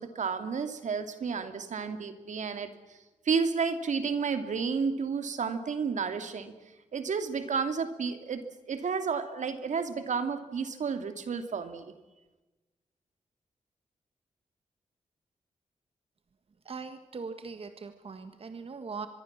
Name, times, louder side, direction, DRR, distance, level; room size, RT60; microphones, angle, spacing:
voice 1, 0.0-3.0 3.2-6.5 6.9-11.9, right 5 dB, 75° right, 9 dB, 2.5 m, -31 dB
voice 2, 16.6-19.1, right 5 dB, 50° right, 9 dB, 1.6 m, -40 dB
25.0 x 22.5 x 7.4 m, 1.1 s
wide cardioid pair, 115°, 13 cm